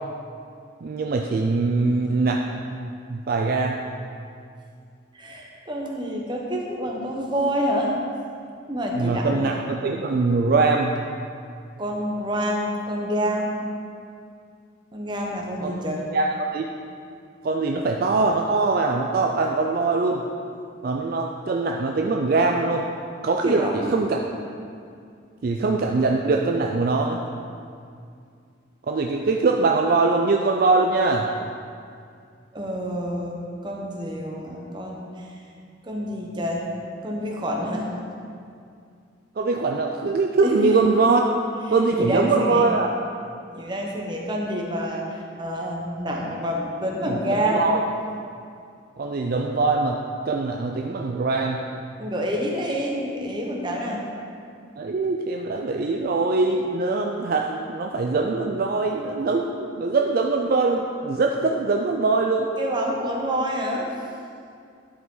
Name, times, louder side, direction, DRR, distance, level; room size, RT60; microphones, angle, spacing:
voice 1, 0.8-2.5 2.7-3.8 9.0-10.9 15.6-15.9 16.1-16.6 17.4-20.2 20.8-22.9 23.2-24.2 25.4-27.2 28.9-31.3 39.4-41.2 41.7-42.9 47.1-47.8 49.0-51.6 54.8-62.5, right 3 dB, 50° right, 2 dB, 0.4 m, -22 dB
voice 2, 5.1-8.0 8.7-9.4 11.8-13.6 14.9-16.0 23.4-23.9 32.5-35.3 35.8-36.7 37.0-37.9 40.4-40.8 42.0-42.7 43.6-47.8 52.0-54.0 62.6-63.9, equal, 25° right, -1 dB, 0.9 m, -27 dB
11.0 x 5.0 x 3.8 m, 2.4 s
head